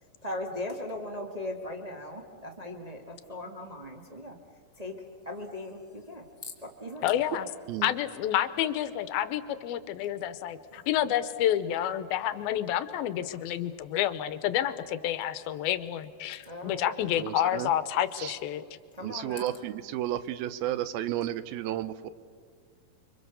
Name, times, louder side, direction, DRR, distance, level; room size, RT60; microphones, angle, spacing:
voice 1, 0.2-4.4 4.7-7.1 10.7-10.8 12.4-12.5 16.4-17.1 18.9-19.5, left 1 dB, 30° right, 1 dB, 0.7 m, -39 dB
voice 2, 7.0-7.5 7.8-18.6, left 11 dB, 90° left, 13 dB, 2.7 m, -29 dB
voice 3, 17.2-17.7 18.2-18.3 19.0-22.1, right 12 dB, 80° right, 15 dB, 2.6 m, -32 dB
30.0 x 24.0 x 7.0 m, 2.1 s
omnidirectional pair, 4.2 m